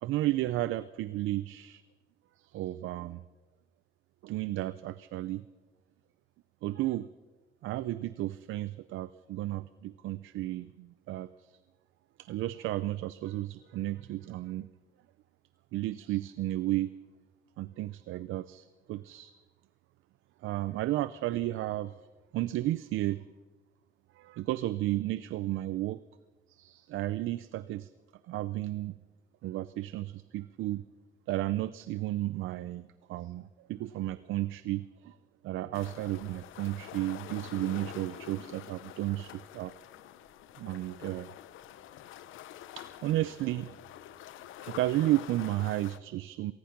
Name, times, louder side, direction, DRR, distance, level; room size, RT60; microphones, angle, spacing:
voice 1, 0.0-1.8 2.4-3.2 4.2-5.4 6.6-7.1 7.6-11.5 12.3-14.7 15.7-16.9 17.6-19.3 20.4-21.9 22.3-23.2 24.2-26.0 26.5-27.9 28.3-28.9 29.4-30.8 31.3-35.2 35.4-39.7 40.6-41.3 42.8-43.7 44.6-46.5, right 15 dB, 90° right, 15 dB, 0.6 m, -33 dB
sound 1, 35.7-46.0, left 12 dB, 85° left, 0.9 m, -47 dB
26.5 x 19.5 x 6.0 m, 1.3 s
cardioid pair, 90°, 20 cm